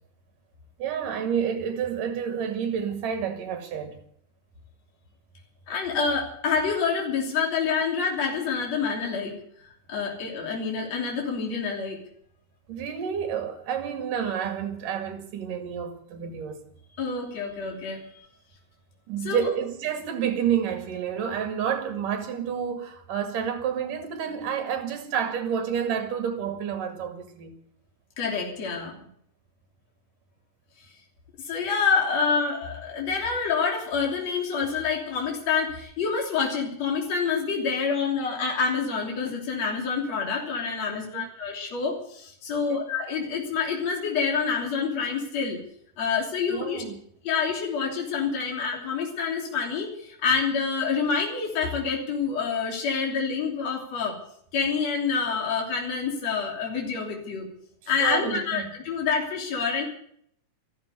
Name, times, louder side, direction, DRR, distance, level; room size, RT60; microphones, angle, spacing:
voice 1, 0.8-4.0 12.7-16.7 19.1-27.6 41.1-41.3 42.7-42.8 46.5-47.0 58.0-58.7, right 8 dB, 70° right, 3.6 m, -29 dB
voice 2, 5.7-9.4 9.9-12.0 17.0-18.3 19.2-19.5 28.2-29.0 31.5-45.6 46.0-46.8 47.2-54.2 54.5-57.5 57.9-59.8, left 5 dB, 50° left, 4.2 m, -27 dB
14.0 x 12.5 x 8.2 m
omnidirectional pair, 4.0 m